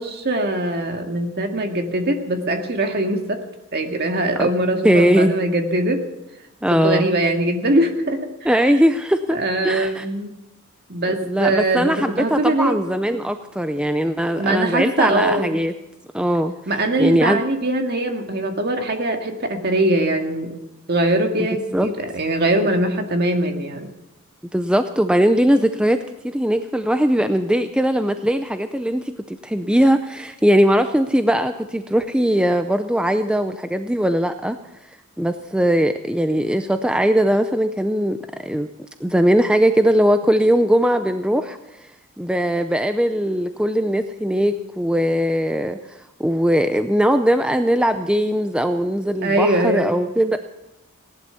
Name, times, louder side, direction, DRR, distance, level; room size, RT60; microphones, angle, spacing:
voice 1, 0.0-3.4 3.7-6.0 6.7-8.5 9.3-10.3 10.9-12.8 14.4-15.5 16.7-20.5 20.9-23.9 49.2-49.9, right 1 dB, 45° right, 4 dB, 2.0 m, -22 dB
voice 2, 4.8-5.3 6.6-7.1 8.4-9.4 9.6-10.1 11.2-15.7 16.1-16.5 17.0-17.4 21.7-21.9 24.5-34.6 35.2-38.7 39.0-41.6 42.2-50.4, equal, 5° right, 8 dB, 0.5 m, -20 dB
17.5 x 11.5 x 6.9 m, 0.91 s
head